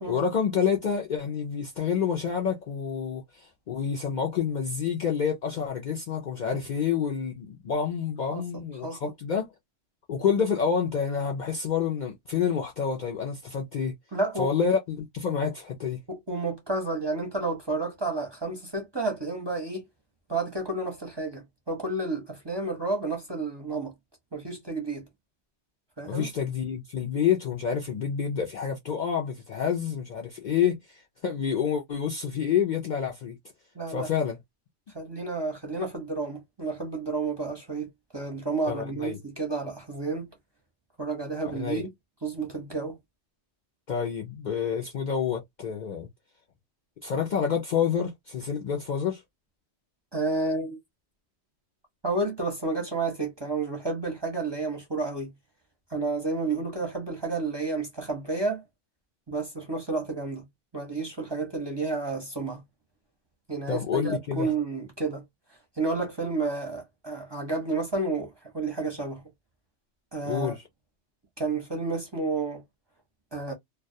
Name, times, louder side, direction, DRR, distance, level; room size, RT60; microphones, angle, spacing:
voice 1, 0.1-9.5 10.1-13.9 14.4-16.0 26.0-33.4 33.9-34.4 38.7-39.2 41.5-41.9 43.9-46.1 47.0-49.2 63.7-64.5 70.2-70.6, left 7 dB, 60° left, 0.5 m, -28 dB
voice 2, 14.1-14.5 16.1-19.8 20.3-23.9 24.3-25.1 26.0-26.3 33.8-34.1 34.9-40.3 41.0-41.9 42.2-43.0 50.1-50.8 52.0-55.3 55.9-58.6 59.3-60.5 60.7-62.6 63.5-65.2 65.8-69.2 70.1-70.6 71.4-72.6 73.3-73.5, right 3 dB, 30° right, 0.6 m, -31 dB
2.3 x 2.1 x 2.6 m
omnidirectional pair, 1.2 m